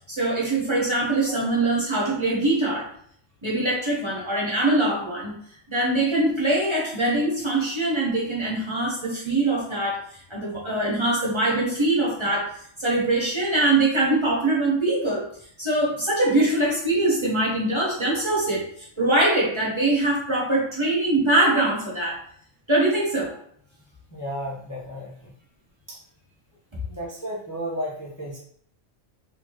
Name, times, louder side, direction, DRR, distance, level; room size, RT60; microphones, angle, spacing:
voice 1, 0.1-2.9 3.4-5.4 5.7-10.0 10.3-12.5 12.8-15.2 15.6-22.2 22.7-23.4, right 2 dB, 25° right, -5 dB, 1.0 m, -23 dB
voice 2, 1.2-1.6 24.1-25.3 25.9-26.0 26.9-28.4, equal, 20° left, -6 dB, 0.6 m, -33 dB
4.2 x 2.8 x 3.0 m, 0.63 s
omnidirectional pair, 1.3 m